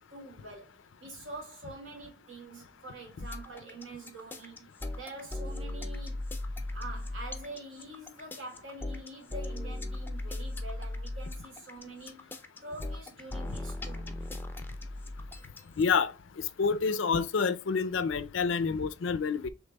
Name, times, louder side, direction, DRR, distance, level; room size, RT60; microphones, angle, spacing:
voice 1, 0.0-4.7 5.0-6.2 6.7-12.3 12.6-14.3, right 2 dB, 70° right, 2.2 m, -45 dB
sound 1, 3.2-16.0, left 1 dB, 10° left, 0.5 m, -37 dB
voice 2, 15.8-16.1 16.6-19.5, left 5 dB, 70° left, 0.5 m, -28 dB
5.2 x 3.4 x 2.2 m
head